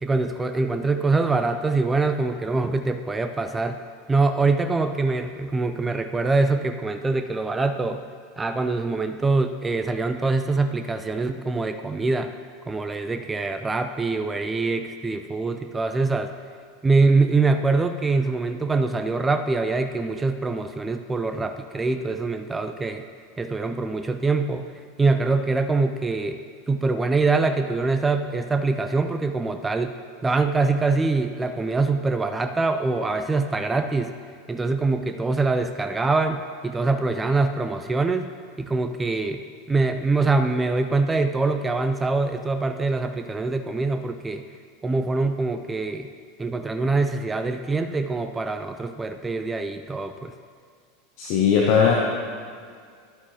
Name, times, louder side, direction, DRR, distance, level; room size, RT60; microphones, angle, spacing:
voice 1, 0.0-3.8 4.1-8.0 8.4-12.3 12.7-16.3 16.8-23.0 23.4-24.7 25.0-26.4 26.7-29.9 30.2-34.1 34.5-38.3 38.6-39.4 39.7-44.4 44.8-46.1 46.4-50.3, right 3 dB, 15° right, 8 dB, 0.4 m, -24 dB
voice 2, 51.2-51.9, left 7 dB, 50° left, -1 dB, 0.9 m, -18 dB
11.0 x 8.4 x 2.9 m, 2.1 s
figure-of-eight pair, 85°, 0 cm